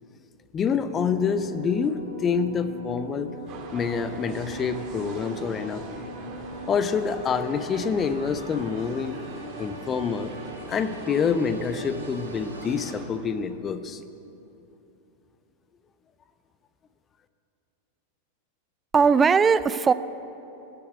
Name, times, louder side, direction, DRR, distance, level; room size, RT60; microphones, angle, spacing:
voice 1, 0.5-3.4 3.7-5.9 6.7-9.2 9.6-10.4 10.7-14.0, left 6 dB, 25° left, 12 dB, 0.7 m, -27 dB
sound 1, 0.7-12.9, right 1 dB, 85° right, 1.8 m, -41 dB
sound 2, 3.5-13.1, right 4 dB, 35° right, 2.0 m, -42 dB
voice 2, 18.9-19.9, right 5 dB, 20° right, 15 dB, 0.4 m, -18 dB
16.5 x 7.5 x 8.1 m, 3.0 s
figure-of-eight pair, 90°, 0 cm